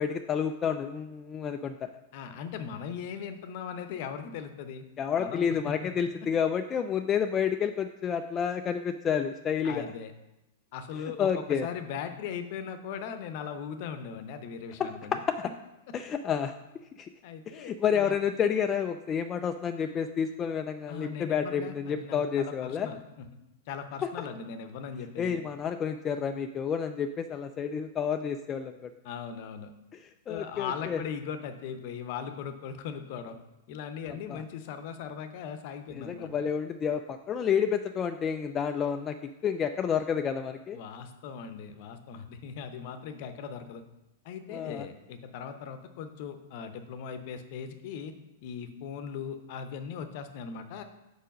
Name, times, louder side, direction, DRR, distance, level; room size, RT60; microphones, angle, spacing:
voice 1, 0.0-1.9 5.0-9.9 11.2-11.7 14.8-15.2 15.9-16.5 17.0-17.1 17.5-22.9 24.0-24.1 25.2-28.9 30.3-31.0 34.3-34.4 35.9-39.2 39.4-40.8 44.5-44.9, left 7 dB, 25° left, 7 dB, 0.3 m, -30 dB
voice 2, 2.1-4.8 5.2-5.9 9.6-10.1 10.7-11.3 11.6-15.2 17.2-18.2 20.9-23.0 23.7-25.4 29.0-29.7 30.3-33.4 33.7-36.5 40.7-43.8 44.2-48.1 48.4-50.8, left 7 dB, 55° left, 9 dB, 0.7 m, -39 dB
5.0 x 4.5 x 6.1 m, 0.97 s
hypercardioid pair, 110°, 0 cm